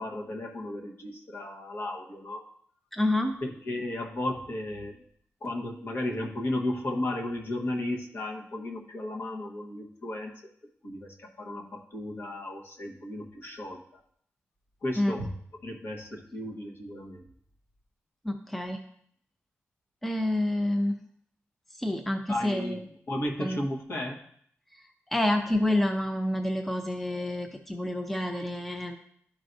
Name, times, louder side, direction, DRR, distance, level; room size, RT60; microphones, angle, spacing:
voice 1, 0.0-2.4 3.4-5.0 5.4-10.3 10.8-14.0 14.8-15.3 15.6-17.3 22.3-24.2, left 1 dB, 50° left, 1 dB, 1.3 m, -34 dB
voice 2, 2.9-3.3 15.0-15.2 18.2-18.8 20.0-21.0 21.8-22.8 23.4-23.6 25.1-29.0, left 1 dB, 5° left, 4 dB, 0.5 m, -28 dB
12.0 x 4.6 x 2.6 m, 0.64 s
wide cardioid pair, 130°, 5 cm